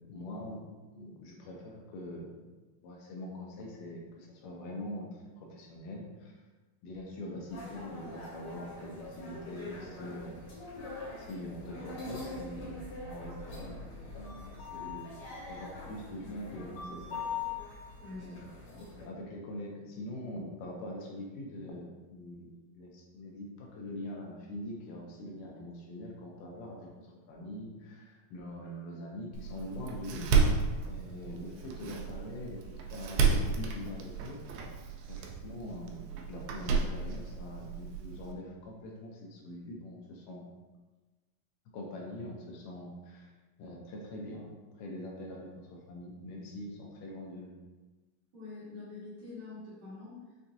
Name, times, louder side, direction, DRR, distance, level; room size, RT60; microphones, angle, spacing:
voice 1, 0.1-0.6 0.9-2.4 2.8-6.4 6.8-10.4 11.2-15.0 15.5-17.3 18.2-30.3 30.9-34.4 35.1-40.5 41.7-43.3 43.6-44.5 44.8-47.5, left 1 dB, 80° left, -1 dB, 2.2 m, -43 dB
sound 1, 7.5-19.0, left 4 dB, 60° left, 2.7 m, -43 dB
voice 2, 18.0-18.4 18.7-18.9 48.3-50.2, left 3 dB, 55° right, -11 dB, 2.0 m, -45 dB
Door, 29.3-38.3, right 5 dB, 90° right, 2.3 m, -32 dB
5.9 x 2.6 x 2.6 m, 1.2 s
omnidirectional pair, 3.9 m